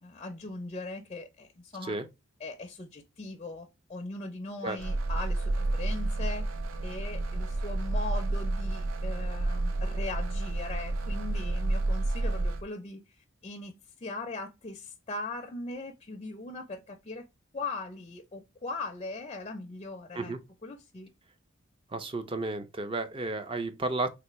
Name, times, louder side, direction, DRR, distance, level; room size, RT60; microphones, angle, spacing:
voice 1, 0.0-2.0 2.4-6.5 6.8-17.3 17.5-20.3 20.6-21.1, left 3 dB, 30° left, 0.4 m, -40 dB
sound 1, 4.8-12.6, right 2 dB, 90° right, 0.5 m, -30 dB
voice 2, 21.9-24.1, right 3 dB, 25° right, 0.4 m, -32 dB
3.3 x 2.6 x 2.9 m
head